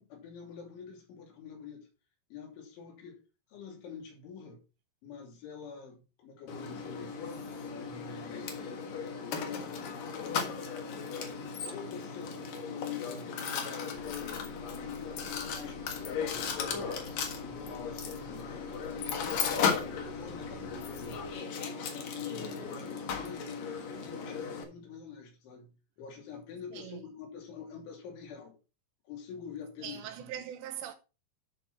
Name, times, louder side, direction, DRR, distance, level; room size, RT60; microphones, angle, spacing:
voice 1, 0.0-1.9 2.3-3.2 3.5-4.6 5.0-7.2 7.7-8.6 9.4-9.7 11.7-14.4 14.8-17.0 17.4-21.2 22.1-23.7 24.0-28.6 29.1-30.4, left 6 dB, 75° left, 5.4 m, -46 dB
Mechanisms, 6.5-24.6, left 6 dB, 60° left, 2.7 m, -36 dB
sound 1, 13.9-21.3, left 2 dB, 20° left, 0.8 m, -52 dB
voice 2, 26.7-27.0 29.8-30.9, right 10 dB, 75° right, 2.9 m, -41 dB
11.0 x 6.0 x 4.3 m
omnidirectional pair, 5.5 m